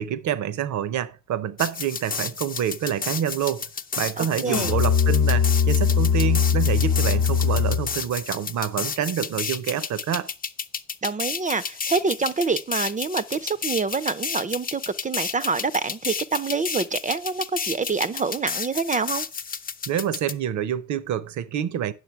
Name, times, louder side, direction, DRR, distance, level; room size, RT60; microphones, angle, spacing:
voice 1, 0.0-3.7 4.0-10.3 19.9-21.9, right 9 dB, 70° right, 0.8 m, -27 dB
sound 1, 1.6-20.3, left 6 dB, 30° left, 0.6 m, -32 dB
voice 2, 4.2-4.7 11.0-19.3, right 4 dB, 25° right, 0.5 m, -26 dB
Musical instrument, 4.5-8.0, left 6 dB, 70° left, 0.8 m, -21 dB
9.4 x 6.5 x 4.5 m
cardioid pair, 90°, 30 cm